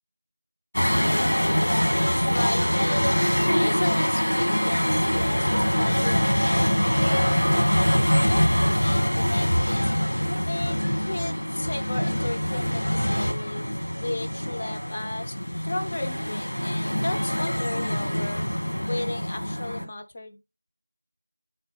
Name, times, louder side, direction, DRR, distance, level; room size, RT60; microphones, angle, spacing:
sound 1, 0.7-19.8, equal, 70° left, 1.5 m, -24 dB
voice 1, 1.6-3.3 3.6-9.9 10.4-13.6 14.0-15.3 15.6-18.5 18.9-20.4, left 2 dB, 15° left, 0.4 m, -35 dB
7.3 x 4.3 x 3.9 m
figure-of-eight pair, 175°, 0 cm